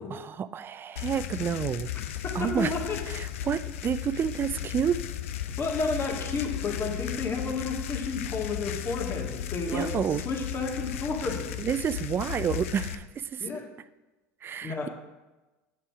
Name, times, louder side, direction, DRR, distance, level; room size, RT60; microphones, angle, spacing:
voice 1, 0.1-1.9 2.3-2.7 3.1-5.0 9.7-10.2 11.6-13.5 14.4-14.9, right 8 dB, 30° right, 15 dB, 0.4 m, -29 dB
sound 1, 1.0-13.0, left 11 dB, 80° left, 0.6 m, -35 dB
voice 2, 2.2-3.0 5.6-11.5 13.4-13.7 14.6-14.9, left 4 dB, 35° left, 0 dB, 2.1 m, -31 dB
7.5 x 6.7 x 4.7 m, 1.1 s
hypercardioid pair, 90°, 7 cm